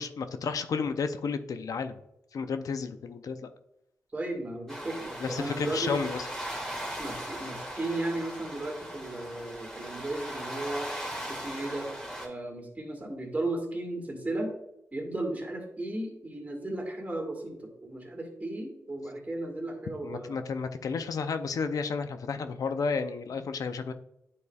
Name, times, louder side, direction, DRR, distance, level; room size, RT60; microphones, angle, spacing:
voice 1, 0.0-2.0 2.3-3.4 5.2-6.3 20.0-23.9, left 5 dB, 70° left, 9 dB, 0.5 m, -32 dB
voice 2, 4.1-6.0 7.0-10.9 11.3-11.9 12.2-14.5 14.9-20.4, right 2 dB, 25° right, 2 dB, 2.1 m, -35 dB
sound 1, 4.7-12.3, right 1 dB, 10° left, 2.3 m, -39 dB
9.6 x 4.8 x 2.3 m, 0.82 s
cardioid pair, 70°, 6 cm